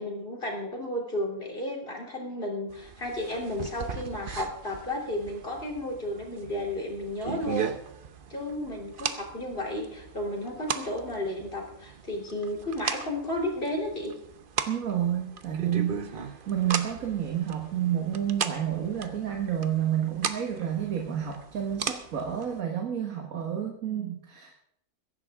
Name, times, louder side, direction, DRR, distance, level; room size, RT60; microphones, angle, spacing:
voice 1, 0.0-7.7 8.3-14.1, left 1 dB, 35° left, 1 dB, 3.3 m, -33 dB
sound 1, 2.7-22.6, right 6 dB, 45° right, 0.9 m, -38 dB
voice 2, 14.7-24.6, right 10 dB, 65° right, 2 dB, 1.8 m, -30 dB
21.5 x 11.0 x 3.6 m, 0.74 s
omnidirectional pair, 1.6 m